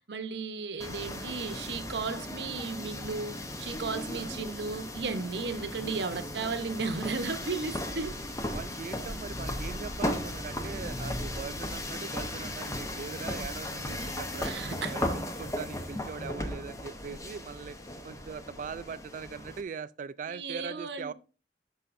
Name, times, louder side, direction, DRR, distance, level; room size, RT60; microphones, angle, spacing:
voice 1, 0.0-8.1 14.4-14.9 20.3-21.1, right 4 dB, 75° right, 0.8 m, -35 dB
sound 1, 0.8-19.6, left 1 dB, 20° left, 0.8 m, -36 dB
voice 2, 8.5-17.8 18.0-21.1, right 5 dB, 45° right, 0.3 m, -41 dB
12.5 x 5.6 x 2.5 m
head